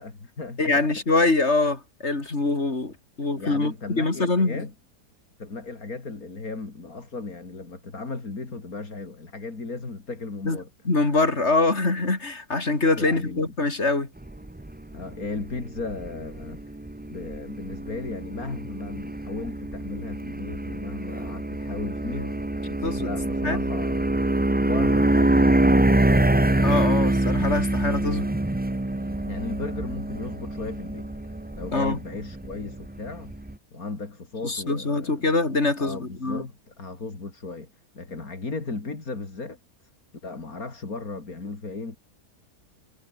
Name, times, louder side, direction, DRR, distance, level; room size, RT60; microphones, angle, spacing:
voice 1, 0.0-0.8 3.4-4.7 5.4-10.7 12.9-13.5 14.9-16.6 17.1-24.2 24.6-26.4 29.3-31.1 31.6-33.3 33.7-35.3 35.8-37.7 37.9-39.6 40.2-42.0, left 3 dB, 60° left, 4.2 m, -36 dB
voice 2, 0.6-4.7 10.4-10.6 10.8-14.1 22.8-23.1 23.4-23.6 26.6-28.3 31.7-32.0 34.4-36.4, left 3 dB, 45° left, 4.0 m, -24 dB
sound 1, 14.2-33.5, right 1 dB, 10° right, 0.6 m, -25 dB
omnidirectional pair, 1.7 m